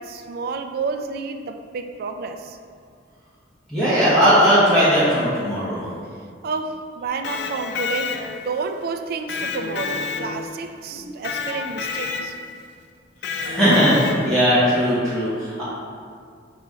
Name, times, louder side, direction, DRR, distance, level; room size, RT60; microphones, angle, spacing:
voice 1, 0.0-2.6 6.4-12.3, right 4 dB, 55° right, 7 dB, 0.3 m, -30 dB
voice 2, 3.7-5.9 10.9-11.0 13.4-15.6, equal, 5° left, -13 dB, 1.1 m, -18 dB
Electric guitar, 7.1-8.6 9.3-10.7 11.2-12.5 13.2-14.5, left 5 dB, 65° left, 0.4 m, -29 dB
4.9 x 2.9 x 3.6 m, 2.2 s
head